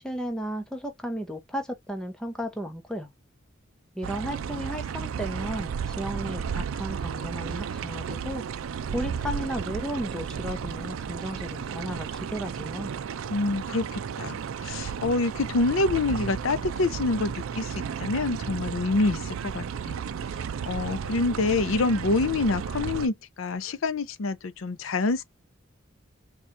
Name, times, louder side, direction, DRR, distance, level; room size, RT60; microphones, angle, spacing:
voice 1, 0.0-3.1 3.9-8.4 8.9-12.9, equal, 5° left, 0.7 m, -34 dB
sound 1, 4.0-23.1, right 7 dB, 90° right, 0.4 m, -33 dB
voice 2, 13.3-20.0 20.6-25.2, left 3 dB, 85° left, 0.6 m, -27 dB
4.3 x 2.4 x 2.5 m
head